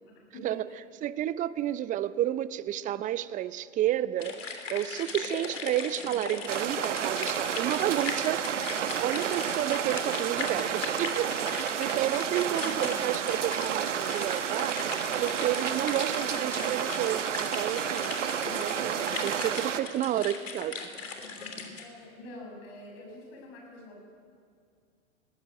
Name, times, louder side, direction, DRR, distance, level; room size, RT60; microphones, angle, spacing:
voice 1, 0.0-0.8 12.2-13.0 21.8-24.1, left 1 dB, 50° left, 1 dB, 7.4 m, -46 dB
voice 2, 1.0-8.5 9.0-14.9 15.2-18.2 18.5-20.8 21.1-21.2, right 12 dB, 20° right, 16 dB, 0.6 m, -31 dB
sound 1, 4.2-21.8, left 4 dB, 75° left, 3.1 m, -39 dB
sound 2, 6.5-19.8, right 8 dB, 70° right, 1.3 m, -31 dB
20.5 x 16.0 x 9.3 m, 2.2 s
figure-of-eight pair, 100°, 38 cm